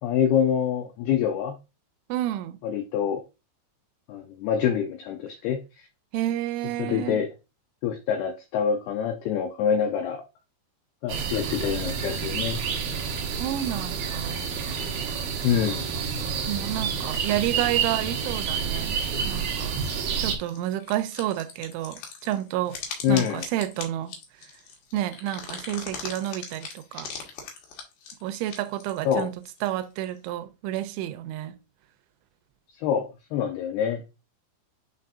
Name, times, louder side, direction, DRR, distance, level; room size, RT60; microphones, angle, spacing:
voice 1, 0.0-1.6 2.6-3.2 4.1-5.9 6.8-7.3 7.8-10.2 11.0-12.6 15.4-15.9 23.0-23.4 29.1-29.3 32.7-34.0, left 8 dB, 85° left, 2.2 m, -26 dB
voice 2, 2.1-2.6 6.1-7.2 13.3-14.5 16.5-19.8 20.2-22.8 23.1-24.1 24.9-27.1 28.2-29.3 29.6-31.6, right 13 dB, 85° right, 3.0 m, -30 dB
sound 1, 11.1-20.3, right 6 dB, 70° right, 2.4 m, -29 dB
sound 2, 20.4-30.2, left 5 dB, 65° left, 2.7 m, -39 dB
9.4 x 4.2 x 2.5 m
omnidirectional pair, 5.4 m